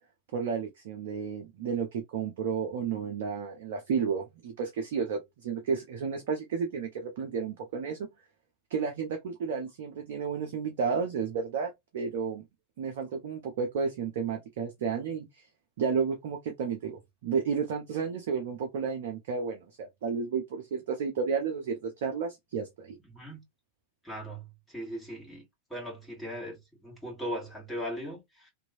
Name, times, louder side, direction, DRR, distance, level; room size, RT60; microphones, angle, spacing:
voice 1, 0.3-8.0 8.7-12.4 12.8-15.3 15.8-23.0, right 6 dB, 55° right, 0.6 m, -32 dB
voice 2, 23.1-23.4 24.0-25.5 25.7-28.5, equal, 5° left, 1.8 m, -39 dB
3.0 x 2.6 x 2.4 m
figure-of-eight pair, 90°, 0 cm